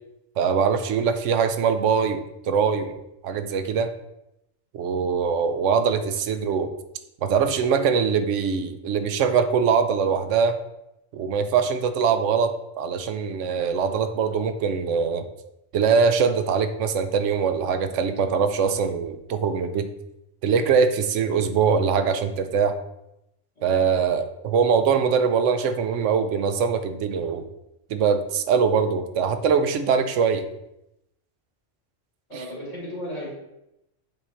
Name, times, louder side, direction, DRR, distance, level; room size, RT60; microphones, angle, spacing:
voice 1, 0.4-3.0 3.2-3.9 4.7-6.7 7.2-10.6 11.1-15.3 15.7-19.9 20.4-22.8 23.6-27.5 27.9-30.5 32.3-32.4, right 6 dB, 75° right, 9 dB, 0.9 m, -22 dB
voice 2, 32.3-33.3, equal, 60° left, -6 dB, 2.2 m, -35 dB
7.8 x 2.8 x 4.3 m, 0.86 s
omnidirectional pair, 1.3 m